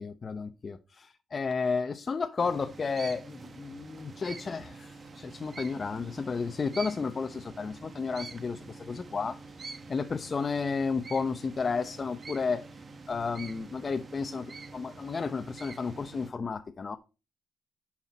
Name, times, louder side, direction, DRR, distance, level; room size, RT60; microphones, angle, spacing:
voice 1, 0.0-9.4 9.9-12.6 13.1-17.0, left 5 dB, 40° left, 0.7 m, -32 dB
sound 1, 2.4-16.3, right 4 dB, 40° right, 1.2 m, -46 dB
11.0 x 5.8 x 4.2 m
cardioid pair, 85°, 0 cm